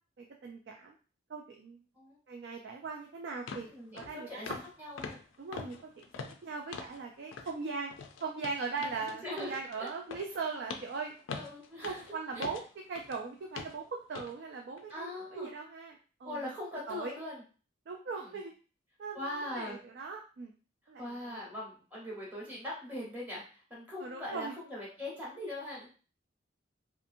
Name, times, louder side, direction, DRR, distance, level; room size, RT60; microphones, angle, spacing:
voice 1, 0.2-0.9 1.3-1.8 2.3-3.7 3.9-4.6 5.4-5.9 6.4-7.9 8.2-11.1 11.8-12.6 12.9-16.4 16.9-17.1 17.9-18.5 19.0-20.5 20.9-21.4 24.0-24.5, right 4 dB, 55° right, 1 dB, 0.3 m, -39 dB
sound 1, 2.8-2.9 3.5-3.7 4.0-4.2 4.5-4.7 5.0-7.0 7.3-7.6 7.9-13.2 13.6-13.8 14.1-14.3 14.8-14.9, left 5 dB, 75° left, 0.4 m, -44 dB
voice 2, 3.6-5.2 9.0-9.9 11.3-12.0 12.3-12.5 14.9-15.5 16.2-17.4 18.1-18.3 19.1-19.8 21.0-25.9, left 1 dB, 10° right, -6 dB, 1.0 m, -41 dB
2.7 x 2.5 x 2.5 m, 0.37 s
head